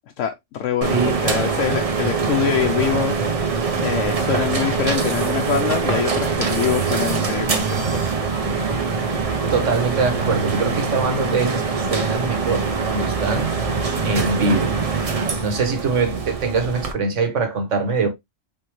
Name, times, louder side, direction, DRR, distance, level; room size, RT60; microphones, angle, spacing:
voice 1, 0.2-3.3 3.8-8.0, left 9 dB, 75° left, 0.9 m, -24 dB
sound 1, 0.8-16.9, right 5 dB, 40° right, 0.6 m, -23 dB
voice 2, 0.9-1.2 9.5-13.5 14.0-14.8 15.4-18.1, right 4 dB, 70° right, 1.5 m, -23 dB
4.4 x 3.5 x 3.0 m
omnidirectional pair, 1.3 m